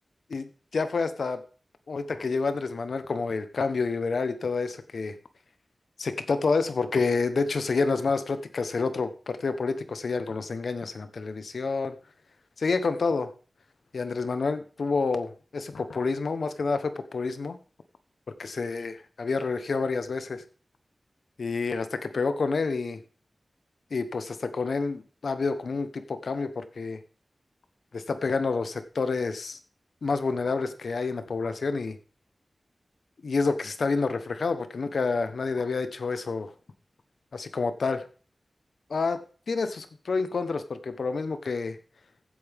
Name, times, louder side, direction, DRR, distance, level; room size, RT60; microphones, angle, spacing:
voice 1, 0.7-1.4 1.9-5.1 6.0-11.9 12.6-13.3 13.9-17.6 18.6-18.9 19.2-20.4 21.4-23.0 23.9-27.0 27.9-29.6 30.0-32.0 33.2-36.5 37.3-38.0 38.9-39.2 39.5-41.8, left 4 dB, 85° left, 10 dB, 1.2 m, -28 dB
15.5 x 8.7 x 3.6 m, 0.38 s
wide cardioid pair, 100°, 0 cm